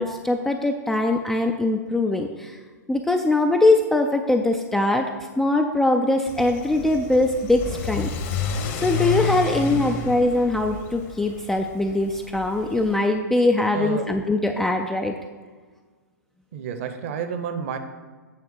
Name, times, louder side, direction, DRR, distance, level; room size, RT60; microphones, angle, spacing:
voice 1, 0.0-2.6 2.9-15.1, left 2 dB, 5° left, 3 dB, 0.3 m, -22 dB
Car / Accelerating revving vroom, 6.3-13.0, left 5 dB, 40° left, 1.0 m, -30 dB
voice 2, 13.7-14.0 16.5-17.8, right 7 dB, 40° right, 8 dB, 0.8 m, -30 dB
8.7 x 3.6 x 6.2 m, 1.4 s
figure-of-eight pair, 115°, 10 cm